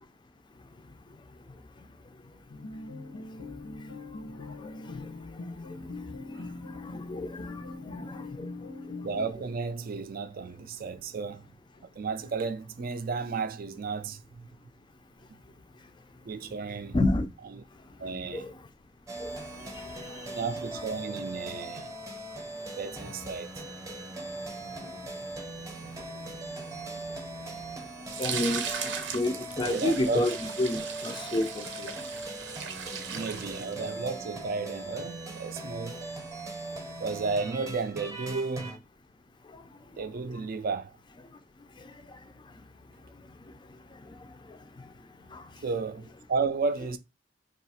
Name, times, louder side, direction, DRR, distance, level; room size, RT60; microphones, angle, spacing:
sound 1, 2.5-9.3, left 3 dB, 65° left, 0.7 m, -41 dB
voice 1, 6.9-7.4 7.9-8.1 16.9-17.3 18.3-18.5 19.2-19.3 28.2-28.7 29.1-30.3 30.6-31.9, left 1 dB, 25° left, 0.4 m, -28 dB
voice 2, 9.0-11.4 12.0-14.5 16.2-17.0 17.5-17.6 18.0-18.5 20.3-21.9 22.8-23.5 29.6-30.3 33.1-36.0 37.0-38.8 40.0-41.0 45.6-47.0, right 4 dB, 50° right, 0.4 m, -33 dB
sound 2, 19.1-38.8, right 2 dB, 15° right, 0.7 m, -40 dB
sound 3, 28.1-34.1, right 7 dB, 90° right, 0.6 m, -38 dB
2.7 x 2.4 x 4.2 m
head